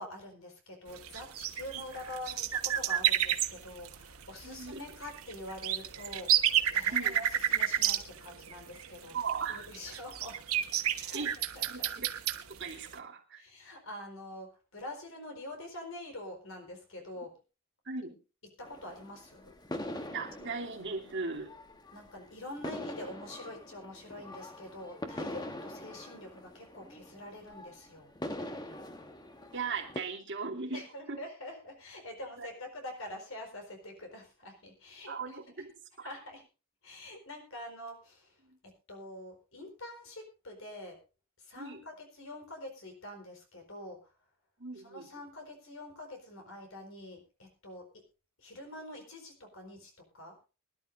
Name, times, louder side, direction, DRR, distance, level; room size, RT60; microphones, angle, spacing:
voice 1, 0.0-9.2 9.5-10.4 11.0-11.2 11.5-11.9 13.4-17.4 18.6-19.5 21.9-28.1 30.7-35.7 36.0-36.4 36.8-38.4 38.6-41.0 41.4-44.0 44.8-48.0 48.4-50.4, left 1 dB, 65° left, 3 dB, 4.5 m, -46 dB
sound 1, 0.9-12.9, right 10 dB, 85° right, 1.3 m, -31 dB
voice 2, 4.4-4.8 6.9-7.2 9.1-9.7 11.1-11.3 11.7-12.1 12.5-13.4 17.8-18.2 20.1-21.5 29.5-31.2 32.4-32.5 35.1-35.7 36.0-36.1 38.4-38.6 41.6-41.8 44.6-45.1, right 4 dB, 55° right, 0 dB, 3.0 m, -38 dB
sound 2, 18.6-30.0, left 1 dB, 20° left, 1.1 m, -43 dB
23.5 x 11.5 x 2.6 m, 0.31 s
head